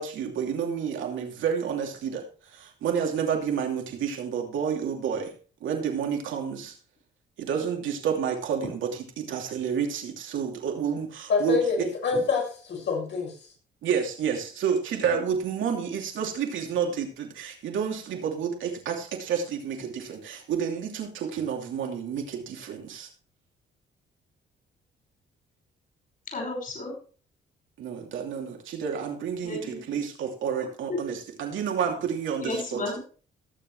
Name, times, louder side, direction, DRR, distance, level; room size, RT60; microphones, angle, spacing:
voice 1, 0.0-5.3 5.6-6.7 7.4-11.9 13.8-23.1 27.8-32.8, right 7 dB, 75° right, 2.8 m, -30 dB
voice 2, 11.3-13.3, left 5 dB, 65° left, 6.1 m, -26 dB
voice 3, 26.3-27.0 29.4-29.8 30.9-31.0 32.4-33.0, left 2 dB, 45° left, 5.6 m, -33 dB
19.0 x 7.1 x 3.3 m
cardioid pair, 90°, 20 cm